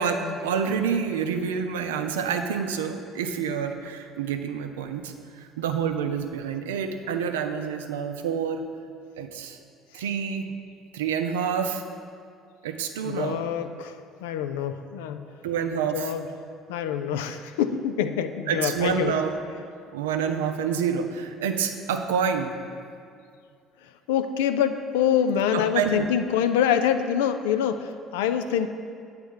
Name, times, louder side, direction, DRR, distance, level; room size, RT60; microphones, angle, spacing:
voice 1, 0.0-8.6 9.2-9.6 9.9-10.5 10.9-11.8 12.6-13.4 15.4-16.1 18.5-19.4 19.9-22.5 25.5-26.1, right 7 dB, 85° right, 6 dB, 0.4 m, -28 dB
voice 2, 13.0-15.2 15.9-16.2 16.7-19.1 24.1-28.7, left 9 dB, 80° left, 9 dB, 0.3 m, -25 dB
8.1 x 3.4 x 6.3 m, 2.3 s
hypercardioid pair, 65°, 0 cm